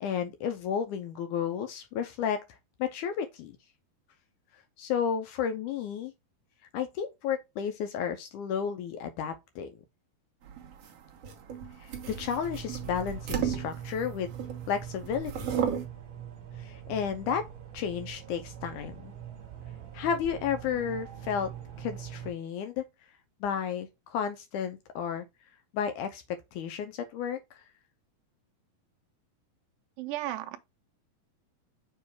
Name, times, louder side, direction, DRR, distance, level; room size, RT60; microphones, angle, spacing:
voice 1, 0.0-2.4 2.8-3.6 4.8-6.1 6.7-9.7 11.8-14.3 14.7-15.5 16.6-17.4 17.7-19.1 19.9-21.5 21.8-22.9 23.4-25.3 25.7-27.6, left 7 dB, 80° left, 1.9 m, -32 dB
sound 1, 10.5-14.7 15.0-15.9, right 8 dB, 60° right, 1.8 m, -34 dB
sound 2, 12.2-22.3, right 10 dB, 40° right, 2.4 m, -43 dB
voice 2, 30.0-30.6, right 14 dB, 80° right, 2.3 m, -34 dB
6.9 x 3.0 x 4.7 m
omnidirectional pair, 4.2 m